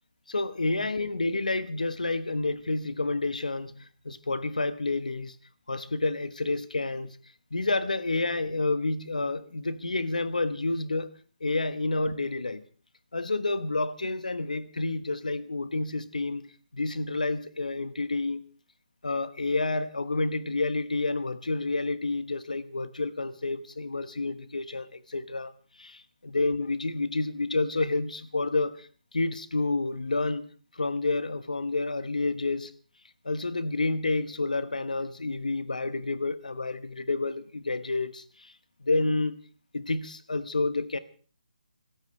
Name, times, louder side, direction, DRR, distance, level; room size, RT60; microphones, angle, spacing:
voice 1, 0.3-5.3 5.7-7.2 7.5-11.1 11.4-12.6 13.1-18.4 19.0-25.5 25.8-32.7 33.2-38.5 38.8-39.4 39.7-41.0, left 3 dB, 85° left, 1.2 m, -29 dB
26.5 x 14.5 x 3.3 m
figure-of-eight pair, 160°, 4 cm